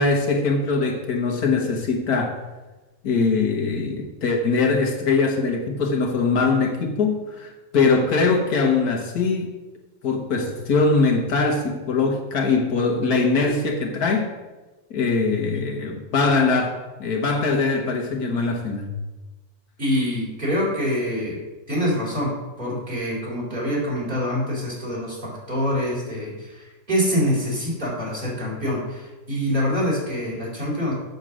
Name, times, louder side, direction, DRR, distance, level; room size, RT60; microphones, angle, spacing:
voice 1, 0.0-2.4 3.0-9.5 10.0-14.3 14.9-18.9, left 4 dB, 75° left, 3 dB, 1.7 m, -22 dB
voice 2, 19.8-21.4 21.7-30.9, equal, 30° right, -5 dB, 3.7 m, -25 dB
7.9 x 6.9 x 6.2 m, 1.2 s
omnidirectional pair, 1.6 m